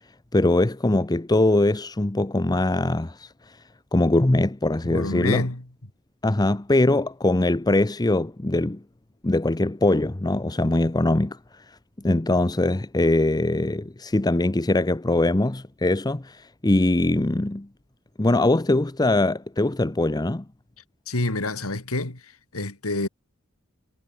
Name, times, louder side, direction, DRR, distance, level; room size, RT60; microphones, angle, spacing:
voice 1, 0.3-3.6 3.9-5.5 6.2-8.8 9.2-11.6 12.0-17.7 18.2-20.4, left 2 dB, 20° left, 0.7 m, -22 dB
voice 2, 4.8-5.6 21.1-22.2 22.5-23.1, left 2 dB, 75° left, 2.9 m, -27 dB
head